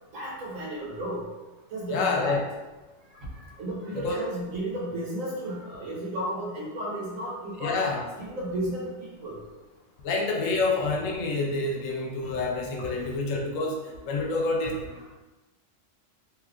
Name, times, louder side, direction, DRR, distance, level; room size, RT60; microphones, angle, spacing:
voice 1, 0.1-1.3 1.7-2.4 3.1-7.8 8.2-9.4 14.6-15.0, right 1 dB, 85° right, -4 dB, 1.4 m, -33 dB
voice 2, 1.9-2.4 3.9-4.2 7.6-8.0 10.0-14.9, left 3 dB, 85° left, 1 dB, 1.0 m, -28 dB
3.1 x 2.3 x 3.6 m, 1.1 s
omnidirectional pair, 1.3 m